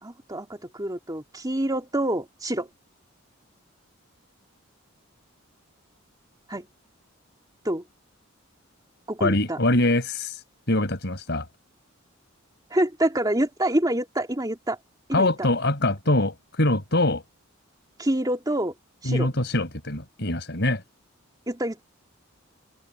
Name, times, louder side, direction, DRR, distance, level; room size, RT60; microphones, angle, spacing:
voice 1, 0.0-2.7 6.5-6.7 7.6-7.8 9.1-9.6 12.7-14.8 15.1-15.3 18.0-18.7 19.0-19.3 21.5-21.8, right 1 dB, 20° right, 2.8 m, -26 dB
voice 2, 9.2-11.5 15.1-17.2 19.1-20.8, left 1 dB, 55° left, 5.4 m, -24 dB
open air
head